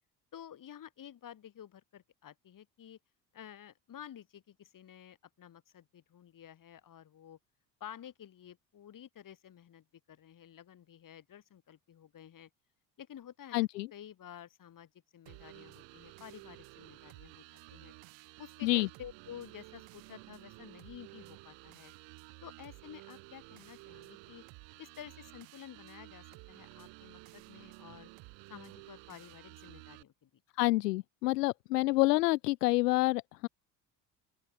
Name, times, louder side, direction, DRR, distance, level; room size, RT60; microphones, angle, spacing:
voice 1, 0.3-3.0 3.3-7.4 7.8-12.5 13.0-17.9 18.4-21.9 22.4-24.4 24.8-28.1 28.5-30.4, left 10 dB, 40° left, 3.9 m, -51 dB
voice 2, 13.5-13.9 18.6-18.9 30.6-33.5, left 20 dB, 75° left, 0.6 m, -28 dB
sound 1, 15.3-30.0, right 28 dB, 60° right, 6.6 m, -53 dB
open air
figure-of-eight pair, 60°, 49 cm